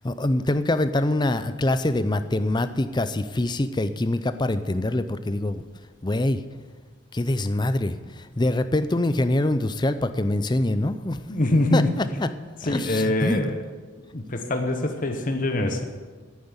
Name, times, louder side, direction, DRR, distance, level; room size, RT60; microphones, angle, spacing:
voice 1, 0.0-5.6 6.0-6.4 7.1-11.2 11.7-12.3 12.6-13.6, left 1 dB, 20° left, 11 dB, 0.5 m, -24 dB
voice 2, 11.3-12.0 12.6-13.6 14.1-15.8, left 1 dB, 40° left, 5 dB, 1.0 m, -24 dB
10.5 x 9.3 x 8.1 m, 1.4 s
head